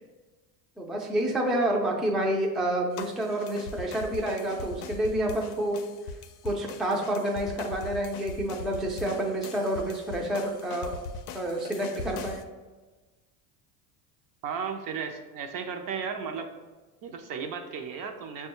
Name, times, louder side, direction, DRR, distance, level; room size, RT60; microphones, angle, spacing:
voice 1, 0.8-5.8 6.4-11.0 11.3-12.4, right 1 dB, ahead, -1 dB, 0.4 m, -28 dB
sound 1, 3.0-12.4, left 4 dB, 90° left, 0.5 m, -40 dB
voice 2, 14.4-16.5 17.0-18.5, right 6 dB, 45° right, 5 dB, 0.6 m, -34 dB
6.1 x 2.3 x 2.9 m, 1.3 s
supercardioid pair, 90°, 45 cm